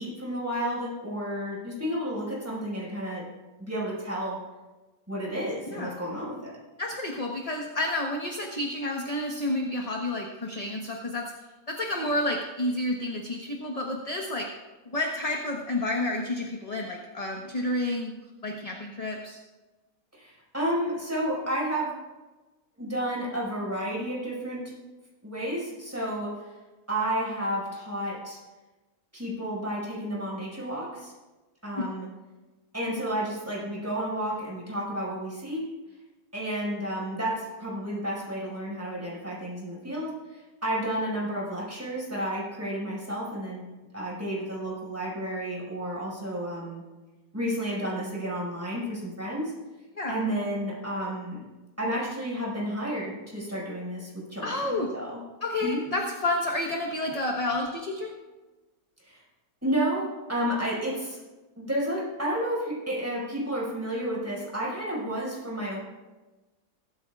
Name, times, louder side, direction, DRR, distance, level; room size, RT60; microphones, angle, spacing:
voice 1, 0.0-3.2 3.6-4.4 5.1-6.5 20.1-21.9 22.8-24.7 25.2-26.5 26.9-28.4 29.1-31.1 31.6-32.1 32.7-35.6 36.3-43.6 43.9-46.8 47.3-49.5 50.1-51.4 51.8-55.2 55.6-55.8 59.0-59.2 59.6-61.2 61.6-65.8, right 1 dB, 10° right, -5 dB, 5.4 m, -31 dB
voice 2, 6.8-11.3 11.7-14.5 14.9-18.1 18.4-19.4 31.7-31.9 50.0-50.2 54.4-54.9 55.4-58.1, left 1 dB, 25° left, 0 dB, 1.2 m, -30 dB
22.0 x 13.5 x 2.4 m, 1.2 s
omnidirectional pair, 1.7 m